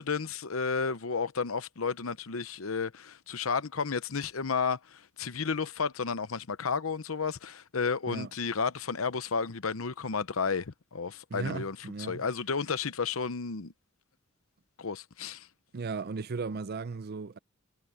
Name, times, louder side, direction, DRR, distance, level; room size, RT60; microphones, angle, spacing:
voice 1, 0.0-11.8 12.1-13.7 14.8-15.5, left 5 dB, 75° left, 0.9 m, -32 dB
voice 2, 11.3-12.2 15.7-17.4, right 4 dB, 50° right, 0.5 m, -36 dB
head